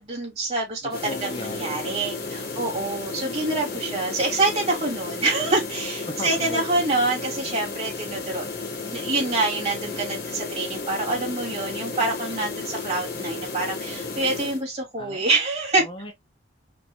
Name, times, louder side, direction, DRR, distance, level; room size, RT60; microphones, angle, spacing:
voice 1, 0.0-8.4 8.8-15.8, right 2 dB, 35° right, 2.8 m, -26 dB
voice 2, 0.8-2.8 6.1-6.6 15.0-15.2 15.8-16.1, left 2 dB, 30° left, 1.0 m, -37 dB
sound 1, 0.9-14.6, left 3 dB, 60° left, 1.6 m, -33 dB
5.3 x 2.7 x 3.0 m
head